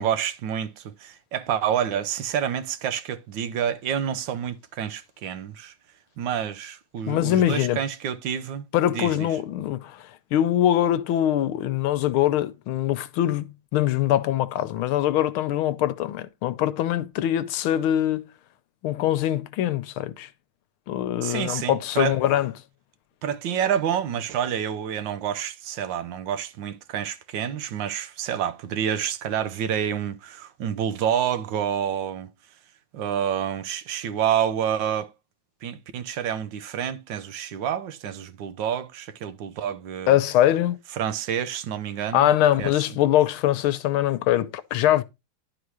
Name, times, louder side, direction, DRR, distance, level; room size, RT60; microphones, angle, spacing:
voice 1, 0.0-5.7 6.2-8.6 8.9-9.3 21.2-22.1 23.2-32.3 32.9-35.1 35.6-40.2 41.0-42.3 42.6-42.7, right 9 dB, 70° right, 1.4 m, -28 dB
voice 2, 7.1-7.8 8.7-18.3 18.8-20.3 20.9-22.5 40.1-40.8 42.1-45.0, left 12 dB, 85° left, 1.5 m, -23 dB
11.5 x 3.9 x 4.7 m
omnidirectional pair, 2.3 m